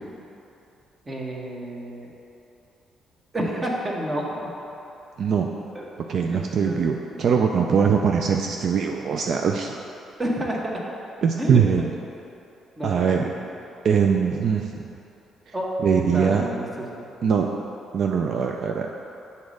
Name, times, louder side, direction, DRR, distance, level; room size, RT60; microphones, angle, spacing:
voice 1, 1.1-2.1 3.3-4.2 5.7-5.9 6.1-6.8 10.2-10.8 11.4-11.8 12.8-13.4 15.5-15.7 16.0-17.1, equal, 20° right, -2 dB, 1.1 m, -30 dB
voice 2, 5.2-5.5 6.1-9.7 11.2-11.9 12.8-13.2 13.8-14.9 15.5-15.6 15.8-16.4 17.2-17.5 17.9-18.9, right 6 dB, 55° right, 2 dB, 0.4 m, -22 dB
7.0 x 4.2 x 6.3 m, 2.8 s
cardioid pair, 125°, 0 cm